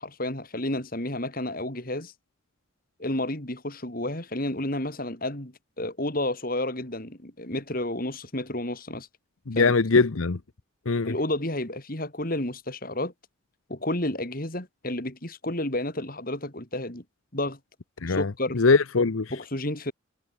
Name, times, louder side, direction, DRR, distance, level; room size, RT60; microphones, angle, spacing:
voice 1, 0.0-2.1 3.0-9.1 9.5-9.7 11.0-13.1 13.7-17.0 17.3-17.6 18.1-18.6 19.3-19.9, left 1 dB, 45° left, 3.5 m, -31 dB
voice 2, 9.5-10.4 10.9-11.1 18.0-19.3, left 4 dB, 90° left, 0.9 m, -22 dB
head